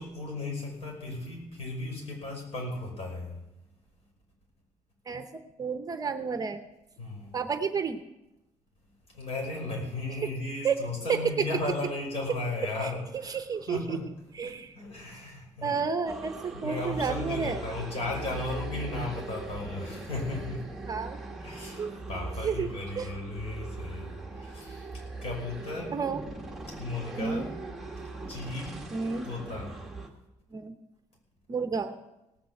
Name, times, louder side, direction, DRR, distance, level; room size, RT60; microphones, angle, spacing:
voice 1, 0.0-3.4 7.0-7.4 9.1-13.4 13.7-14.2 14.4-15.8 16.5-20.7 21.4-26.0 26.7-27.5 28.3-28.9 29.2-29.8, left 2 dB, 55° left, -1 dB, 5.7 m, -36 dB
voice 2, 5.6-6.6 7.3-8.0 10.6-10.7 11.4-11.5 12.8-12.9 13.3-14.0 14.4-14.7 15.6-17.6 20.9-21.2 21.8-21.9 22.4-22.7 23.0-23.1 25.9-26.2 27.2-27.5 28.9-29.3 30.5-30.7 31.5-31.9, right 5 dB, 30° right, 9 dB, 0.7 m, -31 dB
sound 1, 16.1-30.1, right 3 dB, ahead, 1.5 m, -40 dB
18.0 x 6.8 x 7.7 m, 0.93 s
cardioid pair, 160°, 12 cm